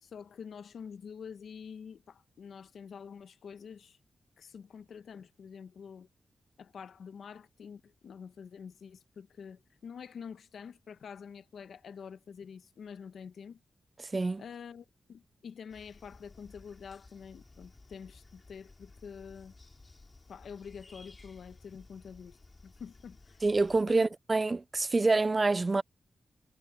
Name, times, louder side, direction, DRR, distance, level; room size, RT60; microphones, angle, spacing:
voice 1, 0.0-4.0 4.4-6.1 6.6-13.6 14.4-19.5 20.3-23.4 23.9-24.1, left 6 dB, 75° left, 0.9 m, -47 dB
sound 1, 15.7-23.8, left 3 dB, 25° left, 5.2 m, -56 dB
voice 2, 23.4-25.8, right 3 dB, 25° right, 0.3 m, -26 dB
wide cardioid pair, 145°, 0 cm